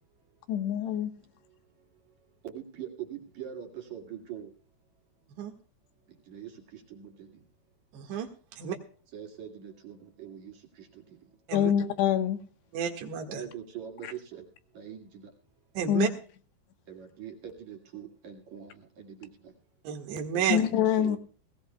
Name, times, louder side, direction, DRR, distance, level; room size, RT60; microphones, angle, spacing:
voice 1, 0.5-1.1 11.5-12.4 14.0-14.1 15.9-16.1 20.5-21.2, left 9 dB, 80° left, 7 dB, 3.3 m, -25 dB
voice 2, 1.1-1.9 2.4-4.5 6.2-7.5 9.1-11.3 13.3-14.5 14.7-15.3 16.9-19.6 20.3-21.2, right 9 dB, 50° right, 2 dB, 2.9 m, -43 dB
voice 3, 7.9-8.3 8.6-8.8 11.5-11.7 12.7-13.4 15.8-16.1 19.9-20.6, right 8 dB, 85° right, 4 dB, 3.9 m, -31 dB
19.5 x 18.0 x 2.3 m, 0.41 s
omnidirectional pair, 4.9 m